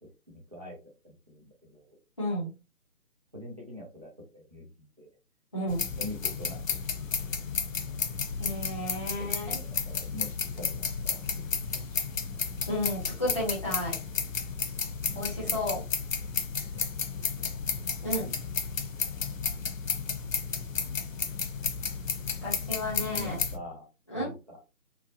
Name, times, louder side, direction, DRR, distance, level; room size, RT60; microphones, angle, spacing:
voice 1, 0.0-0.8 1.0-2.0 3.3-5.1 6.0-6.8 9.2-11.2 11.7-12.0 12.4-12.6 15.1-15.5 16.7-16.9 17.3-17.5 23.0-23.9 24.1-24.6, left 1 dB, 25° right, -2 dB, 0.6 m, -44 dB
voice 2, 2.2-2.5 5.5-5.9 8.4-9.6 12.7-13.9 15.1-15.8 18.0-18.3 22.4-23.4 24.1-24.3, left 1 dB, 20° left, -7 dB, 0.8 m, -32 dB
sound 1, 5.7-23.6, left 5 dB, 65° left, 0.5 m, -32 dB
3.0 x 2.0 x 2.5 m, 0.29 s
figure-of-eight pair, 155°, 43 cm